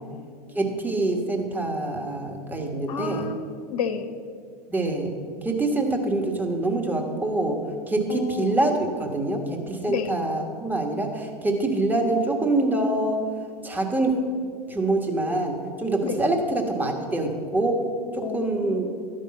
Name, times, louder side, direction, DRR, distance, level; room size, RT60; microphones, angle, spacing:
voice 1, 0.0-0.6 2.9-4.2 8.1-8.5 9.9-10.1 16.0-16.2 18.2-19.1, left 5 dB, 60° left, 9 dB, 0.9 m, -32 dB
voice 2, 0.5-3.3 4.7-5.1 5.4-7.6 7.9-13.2 13.6-14.1 14.7-17.8 18.1-18.9, right 2 dB, 10° right, 2 dB, 1.3 m, -25 dB
12.5 x 5.5 x 7.5 m, 2.2 s
figure-of-eight pair, 90°, 21 cm